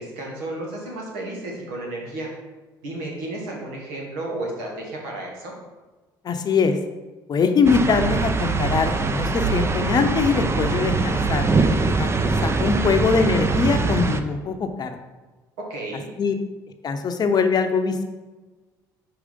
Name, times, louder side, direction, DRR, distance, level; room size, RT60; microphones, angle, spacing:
voice 1, 0.0-2.3 2.8-5.5 15.7-16.1, right 2 dB, 85° right, -2 dB, 1.7 m, -32 dB
voice 2, 6.2-6.8 7.3-11.5 11.8-15.0 16.2-16.3 16.8-18.0, left 5 dB, 45° left, 7 dB, 0.7 m, -22 dB
sound 1, 7.6-14.2, right 4 dB, 30° right, 0.6 m, -22 dB
5.0 x 4.7 x 5.2 m, 1.2 s
supercardioid pair, 70°, 9 cm